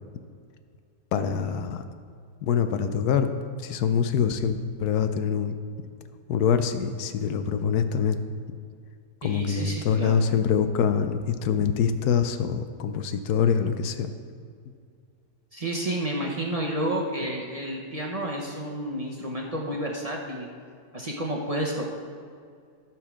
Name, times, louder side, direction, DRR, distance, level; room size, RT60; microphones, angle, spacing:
voice 1, 1.1-1.8 2.4-3.3 3.6-5.6 6.3-8.2 9.2-14.1, left 7 dB, 80° left, 9 dB, 1.2 m, -25 dB
voice 2, 9.2-10.3 15.5-20.5 20.9-21.8, right 1 dB, 30° right, -2 dB, 0.9 m, -30 dB
13.5 x 4.6 x 6.2 m, 2.2 s
omnidirectional pair, 1.6 m